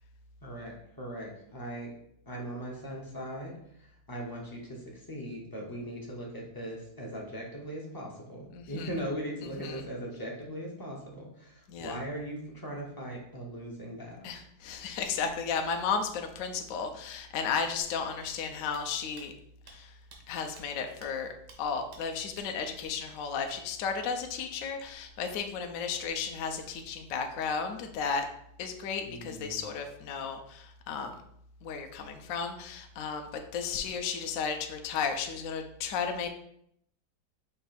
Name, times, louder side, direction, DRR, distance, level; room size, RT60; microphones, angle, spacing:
voice 1, 0.4-1.9 2.3-3.5 4.1-14.3 29.1-29.6, equal, 35° left, -2 dB, 0.3 m, -39 dB
voice 2, 8.5-8.9 9.4-9.8 11.7-12.0 14.2-19.3 19.7-19.9 20.3-21.3 21.6-28.3 28.6-31.2 31.6-36.3, left 6 dB, 70° left, 5 dB, 0.8 m, -34 dB
sound 1, 17.8-17.9 18.3-18.4 18.7-18.8 19.2-19.3 19.7-19.8 20.1-20.2 20.6-20.7 21.0-21.1 21.5-21.6 21.9-22.0 22.4-22.5, right 3 dB, 85° right, 1.5 m, -51 dB
5.3 x 2.3 x 4.1 m, 0.71 s
omnidirectional pair, 1.8 m